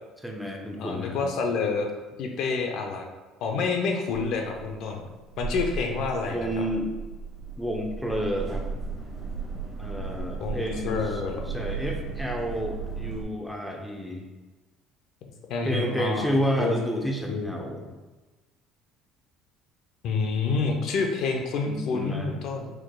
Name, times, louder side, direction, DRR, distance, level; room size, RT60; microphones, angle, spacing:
voice 1, 0.2-1.3 6.3-6.9 7.6-8.7 9.8-11.2 11.5-14.3 15.6-17.8 21.6-22.3, equal, ahead, 1 dB, 0.6 m, -30 dB
voice 2, 0.8-1.9 2.2-3.0 3.4-5.0 5.4-6.5 10.4-11.5 15.5-16.7 17.3-17.5 20.0-22.7, left 4 dB, 65° left, 3 dB, 0.6 m, -28 dB
sound 1, 4.1-13.2, right 4 dB, 15° right, 1.2 m, -35 dB
4.5 x 4.4 x 2.2 m, 1.2 s
supercardioid pair, 100°, 0 cm